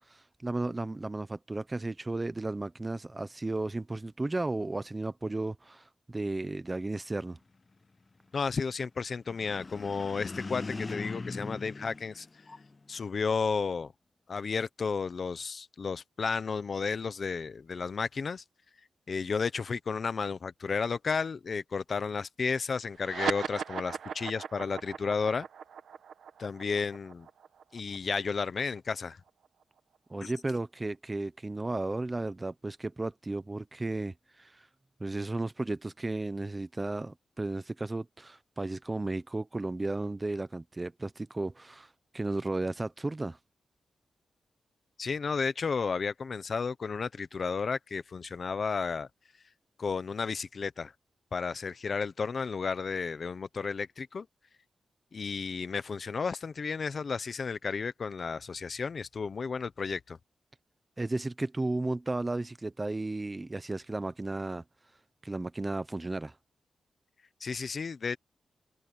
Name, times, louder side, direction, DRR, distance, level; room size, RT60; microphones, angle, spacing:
voice 1, 0.0-7.4 30.1-34.7 35.0-43.4 61.0-64.6 65.2-66.3, right 2 dB, 15° right, 0.7 m, -34 dB
voice 2, 8.3-12.3 12.9-13.9 14.3-18.4 19.1-25.5 26.4-27.3 27.7-29.2 30.2-30.3 45.0-49.1 49.8-50.9 51.3-54.3 55.1-60.2 67.4-68.2, left 5 dB, 40° left, 0.9 m, -32 dB
sound 1, 9.3-12.9, left 3 dB, 25° left, 0.3 m, -40 dB
sound 2, 22.9-29.8, right 7 dB, 90° right, 1.5 m, -39 dB
open air
wide cardioid pair, 170°, 0 cm